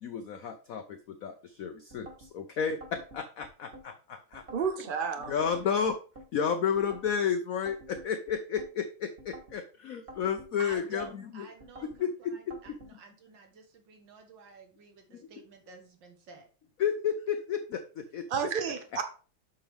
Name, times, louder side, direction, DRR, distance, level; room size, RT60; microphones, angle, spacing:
voice 1, 0.0-4.4 5.3-6.0 6.3-11.0 11.3-11.5 11.8-12.5 15.1-15.3 16.8-18.3, left 7 dB, 80° left, 0.7 m, -32 dB
sound 1, 1.9-2.3 2.8-3.9 4.3-4.7 5.2-6.3 6.7-7.2 7.7-8.7 9.2-9.6 10.1-11.1 11.6-12.0 12.5-12.9, right 1 dB, 30° right, 1.5 m, -49 dB
voice 2, 4.5-5.3 18.3-19.0, right 6 dB, 85° right, 0.4 m, -31 dB
voice 3, 10.6-16.5, right 3 dB, 65° right, 2.1 m, -50 dB
7.8 x 5.8 x 3.4 m
omnidirectional pair, 2.2 m